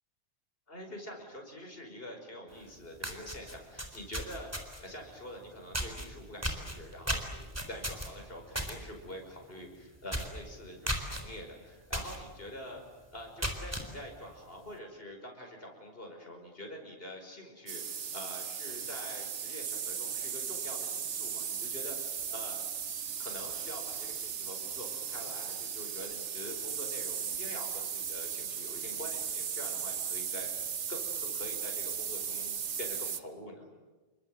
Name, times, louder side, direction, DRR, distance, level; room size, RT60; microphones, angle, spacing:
voice 1, 0.7-4.5 4.8-12.8 13.1-22.0 22.3-22.6 23.2-33.7, equal, 55° left, 2 dB, 5.6 m, -46 dB
sound 1, 2.6-2.7 3.0-4.9 5.7-6.1 6.4-8.8 9.1-9.4 9.6-9.7 10.1-10.4 10.9-11.2 11.9-12.2 12.6-12.7 13.2-13.9, equal, 10° right, 4.0 m, -35 dB
sound 2, 17.7-33.2, right 7 dB, 80° right, 1.4 m, -37 dB
28.0 x 24.5 x 7.9 m, 1.2 s
omnidirectional pair, 1.2 m